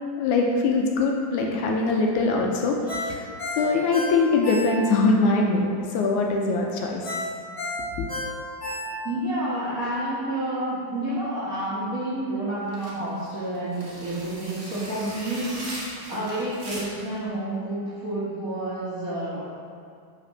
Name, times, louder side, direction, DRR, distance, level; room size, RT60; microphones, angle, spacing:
voice 1, 0.2-3.3 3.6-7.2 8.0-8.1, left 3 dB, 80° left, 0 dB, 1.9 m, -23 dB
Ringtone, 2.9-5.1 5.5-5.6 7.0-9.3 9.7-9.8, left 1 dB, 50° left, 0.7 m, -32 dB
voice 2, 9.0-19.5, right 1 dB, 85° right, -10 dB, 0.7 m, -29 dB
sound 1, 12.7-17.2, right 1 dB, 50° right, 1.4 m, -39 dB
5.7 x 5.0 x 5.6 m, 2.3 s
omnidirectional pair, 3.8 m